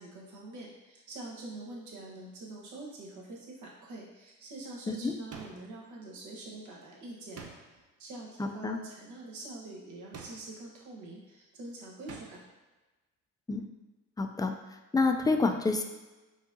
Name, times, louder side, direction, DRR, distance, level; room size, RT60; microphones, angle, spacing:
voice 1, 0.0-7.4 8.0-12.4, right 2 dB, 80° right, -3 dB, 1.1 m, -45 dB
sound 1, 5.3-5.9 7.4-7.9 10.1-10.7 12.1-12.6, right 5 dB, 55° right, 0.6 m, -47 dB
voice 2, 14.2-14.5 14.9-15.8, left 3 dB, 15° left, 5 dB, 0.3 m, -27 dB
5.4 x 2.7 x 2.6 m, 1.1 s
cardioid pair, 90°, 30 cm